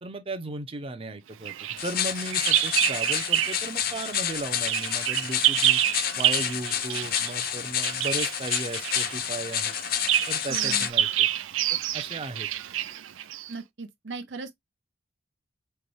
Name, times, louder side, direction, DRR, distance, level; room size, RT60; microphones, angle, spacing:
voice 1, 0.0-1.5 1.8-5.8 6.2-9.7 10.3-11.3 11.7-12.5, right 2 dB, 30° right, 0.6 m, -36 dB
Bird vocalization bird call bird song, 1.5-3.7 4.0-13.5, right 12 dB, 85° right, 0.4 m, -28 dB
sound 1, 1.8-10.9, left 10 dB, 50° left, 0.5 m, -29 dB
voice 2, 10.5-10.9 13.5-14.6, right 3 dB, 70° right, 0.9 m, -38 dB
5.6 x 2.2 x 3.2 m
head